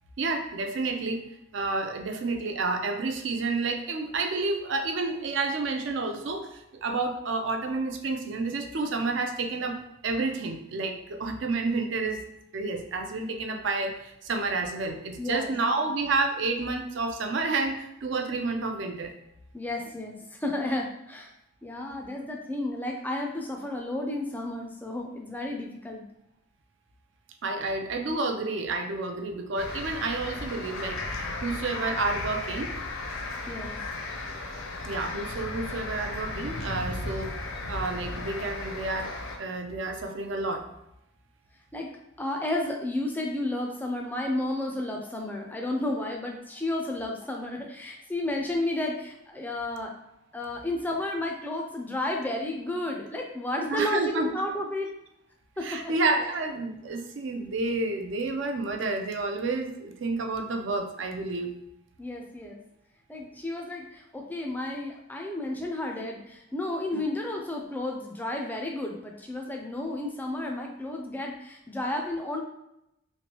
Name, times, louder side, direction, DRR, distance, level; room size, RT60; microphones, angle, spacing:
voice 1, 0.2-1.2 1.5-9.8 10.0-12.2 12.5-19.1 27.4-32.7 34.8-39.1 39.4-40.7 53.7-54.3 55.6-61.5 66.9-67.0, right 3 dB, 60° right, 5 dB, 0.4 m, -30 dB
voice 2, 15.2-15.5 19.5-21.3 21.6-26.0 33.5-33.8 41.7-41.9 42.2-49.9 50.3-54.9 55.6-55.8 62.0-62.6 63.1-72.4, left 1 dB, 10° left, 1 dB, 0.4 m, -32 dB
sound 1, 29.6-39.4, left 2 dB, 70° left, 0.6 m, -35 dB
3.2 x 2.9 x 2.9 m, 0.84 s
head